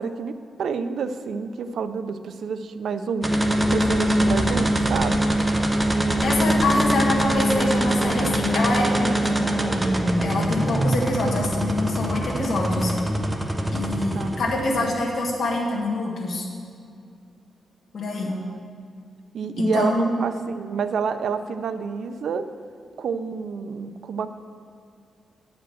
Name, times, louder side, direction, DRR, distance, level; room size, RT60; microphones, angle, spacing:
voice 1, 0.0-5.3 14.1-14.4 14.8-14.9 18.3-18.6 19.3-22.5 23.0-24.3, right 5 dB, 65° right, 10 dB, 0.4 m, -29 dB
sound 1, 3.2-14.9, right 1 dB, 15° right, 0.7 m, -23 dB
voice 2, 6.2-9.4 10.2-12.9 13.7-16.4 17.9-18.3 19.6-20.1, left 2 dB, 60° left, -2 dB, 1.7 m, -25 dB
9.1 x 5.1 x 7.8 m, 2.4 s
wide cardioid pair, 150°, 0 cm